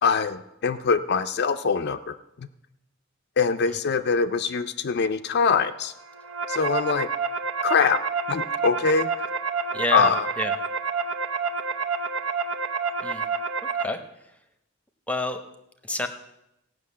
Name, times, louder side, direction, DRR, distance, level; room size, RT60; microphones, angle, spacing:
voice 1, 0.0-2.5 3.4-5.9 6.5-7.1 7.6-8.0 8.3-9.3 9.9-10.3, left 5 dB, 50° left, 8 dB, 0.4 m, -23 dB
sound 1, 6.0-13.8, right 5 dB, 65° right, 0.9 m, -28 dB
voice 2, 9.7-10.5 13.0-13.2 13.8-14.3 15.1-15.4 15.8-16.1, left 1 dB, 5° left, 7 dB, 0.8 m, -29 dB
16.0 x 6.1 x 8.4 m, 0.87 s
head